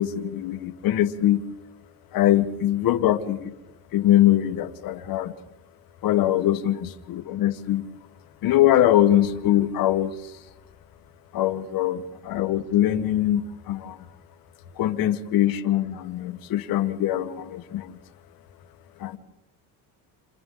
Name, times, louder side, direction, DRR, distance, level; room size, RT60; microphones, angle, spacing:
voice 1, 0.0-1.4 2.1-3.5 3.9-5.3 6.0-7.9 8.4-10.2 11.3-14.0 14.8-18.0 19.0-19.2, left 12 dB, 60° left, 8 dB, 1.4 m, -22 dB
28.5 x 28.0 x 3.8 m, 0.96 s
cardioid pair, 125°, 39 cm